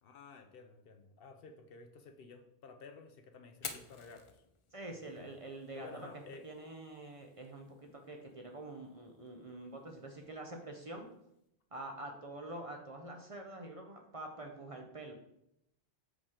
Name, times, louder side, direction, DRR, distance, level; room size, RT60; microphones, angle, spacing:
voice 1, 0.0-4.4 5.2-5.4 5.7-6.5, left 4 dB, 65° left, 6 dB, 0.8 m, -53 dB
Fire, 3.5-11.5, left 5 dB, 45° left, 0.4 m, -53 dB
voice 2, 4.7-6.1 6.4-11.1 11.7-15.1, right 2 dB, 35° right, 2 dB, 0.7 m, -46 dB
6.1 x 4.9 x 3.6 m, 0.79 s
omnidirectional pair, 1.1 m